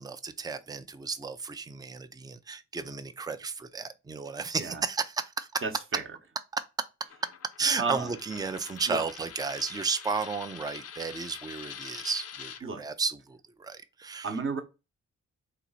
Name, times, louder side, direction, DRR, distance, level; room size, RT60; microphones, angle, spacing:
voice 1, 0.0-5.6 6.5-6.6 7.6-14.3, right 4 dB, 15° right, 0.4 m, -33 dB
voice 2, 5.6-6.0 7.8-8.1 8.9-9.0 12.6-12.8 14.2-14.6, right 4 dB, 40° right, 0.9 m, -32 dB
Coin (dropping), 7.1-12.6, left 8 dB, 50° left, 0.5 m, -44 dB
2.9 x 2.4 x 4.0 m
supercardioid pair, 60°, 31 cm